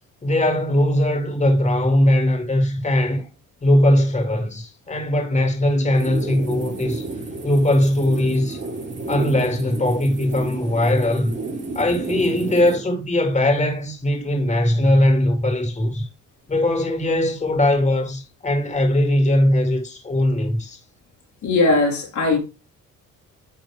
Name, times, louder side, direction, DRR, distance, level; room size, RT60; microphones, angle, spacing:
voice 1, 0.2-3.3 3.6-7.1 7.4-8.6 9.1-11.3 11.7-16.1 16.5-20.8, left 1 dB, 25° left, 2.3 m, -20 dB
sound 1, 5.9-12.8, right 2 dB, 35° right, 3.1 m, -31 dB
voice 2, 21.4-22.4, left 3 dB, 70° left, 3.3 m, -19 dB
10.0 x 3.6 x 3.4 m
cardioid pair, 90°, 30 cm